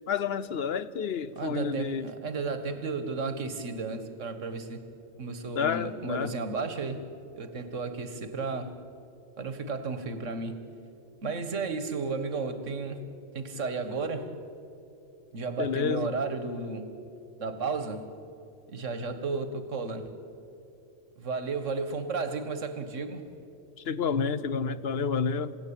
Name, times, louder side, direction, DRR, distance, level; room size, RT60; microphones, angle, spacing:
voice 1, 0.1-2.1 5.6-6.3 15.6-16.1 23.9-25.6, left 6 dB, 60° left, 0.9 m, -29 dB
voice 2, 1.4-4.9 5.2-7.1 7.3-8.8 9.4-10.7 11.2-13.0 13.3-14.4 15.3-16.9 17.4-18.1 18.7-20.1 21.2-23.3, right 4 dB, 85° right, 1.8 m, -33 dB
28.5 x 16.5 x 8.7 m
omnidirectional pair, 1.2 m